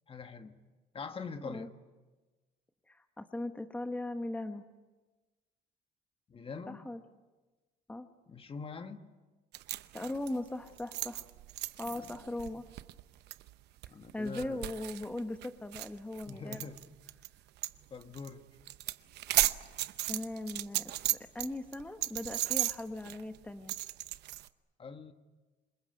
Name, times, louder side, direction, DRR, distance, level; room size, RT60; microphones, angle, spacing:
voice 1, 0.1-0.6 0.9-1.7 6.3-6.9 8.3-9.1 11.8-12.1 13.9-14.6 16.3-16.8 17.9-18.4 24.8-25.1, left 5 dB, 35° left, 8 dB, 1.6 m, -44 dB
voice 2, 2.9-4.6 6.7-7.0 7.9-8.1 9.7-11.2 11.8-12.7 14.1-16.7 20.1-23.7, left 2 dB, 10° left, 7 dB, 1.4 m, -39 dB
sound 1, 9.5-17.3 17.6-17.8 18.0-18.3 18.6-21.5 21.7-24.5, right 16 dB, 80° right, 0.8 m, -35 dB
27.0 x 22.0 x 9.2 m, 1.2 s
cardioid pair, 110°, 17 cm